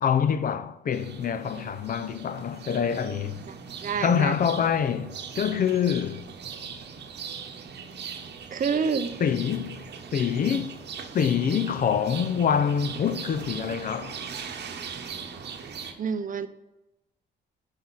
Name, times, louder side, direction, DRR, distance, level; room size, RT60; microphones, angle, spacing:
voice 1, 0.0-3.4 4.0-6.2 9.2-10.7 11.1-14.2, left 7 dB, 45° left, 0.5 m, -26 dB
sound 1, 0.9-15.9, right 6 dB, 60° right, 0.9 m, -40 dB
voice 2, 3.5-4.3 8.5-9.1 16.0-16.5, right 6 dB, 45° right, 0.6 m, -28 dB
6.1 x 5.0 x 5.5 m
cardioid pair, 90°, 20 cm